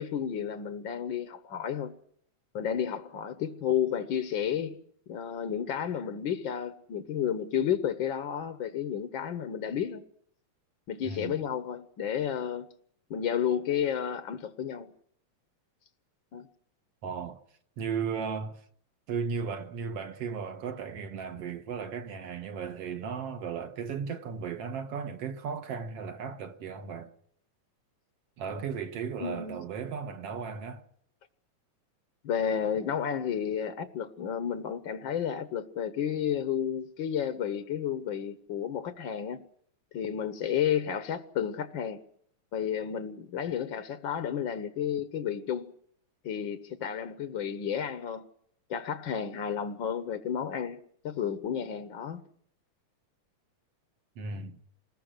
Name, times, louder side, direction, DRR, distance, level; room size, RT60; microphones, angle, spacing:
voice 1, 0.0-1.9 2.5-4.8 5.1-10.0 10.9-12.7 13.1-14.9 16.3-16.5 29.2-29.6 32.2-39.5 39.9-42.0 42.5-45.7 46.2-48.3 48.7-52.2, left 8 dB, 60° left, 1.3 m, -32 dB
voice 2, 11.0-11.4 17.0-17.4 17.8-18.6 19.1-27.1 28.4-30.9 54.2-54.6, right 6 dB, 60° right, 2.1 m, -35 dB
29.0 x 20.5 x 6.3 m
omnidirectional pair, 3.4 m